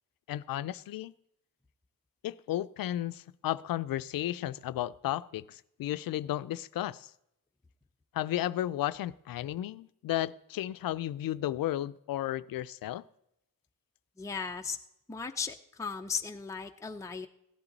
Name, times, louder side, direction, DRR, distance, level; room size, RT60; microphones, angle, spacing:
voice 1, 0.3-1.1 2.2-7.1 8.1-13.0, left 13 dB, 85° left, 0.5 m, -33 dB
voice 2, 14.2-14.8 15.1-17.3, left 5 dB, 10° left, 0.6 m, -36 dB
16.0 x 9.9 x 4.0 m
cardioid pair, 105°, 34 cm